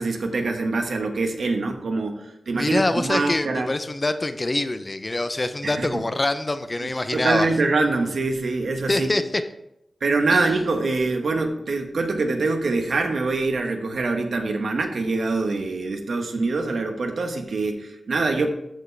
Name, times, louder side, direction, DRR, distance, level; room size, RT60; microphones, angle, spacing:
voice 1, 0.0-3.7 5.6-6.0 6.8-9.1 10.0-18.5, right 3 dB, 75° right, 5 dB, 1.1 m, -24 dB
voice 2, 2.5-7.5 8.9-9.4 10.3-10.4, left 2 dB, 30° left, 10 dB, 0.5 m, -25 dB
13.5 x 4.6 x 3.3 m, 0.82 s
wide cardioid pair, 75°, 0 cm